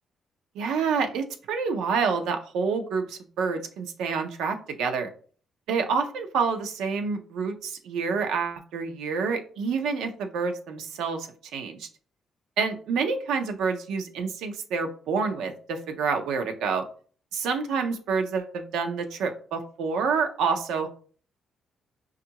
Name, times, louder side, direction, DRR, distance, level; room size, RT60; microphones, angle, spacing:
voice 1, 0.6-5.1 5.7-11.9 12.6-16.8 17.3-20.9, right 5 dB, 85° right, 5 dB, 0.6 m, -28 dB
5.4 x 2.4 x 2.8 m, 0.43 s
cardioid pair, 90°, 0 cm